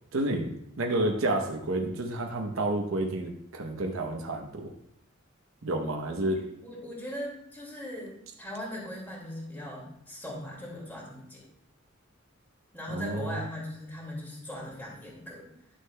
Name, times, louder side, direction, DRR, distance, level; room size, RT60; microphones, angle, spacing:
voice 1, 0.1-0.5 0.8-4.7 5.6-6.4 12.9-13.4, right 1 dB, 90° right, 2 dB, 0.9 m, -30 dB
voice 2, 6.4-11.5 12.7-15.5, equal, 10° left, -4 dB, 2.1 m, -39 dB
11.0 x 6.4 x 2.2 m, 0.77 s
head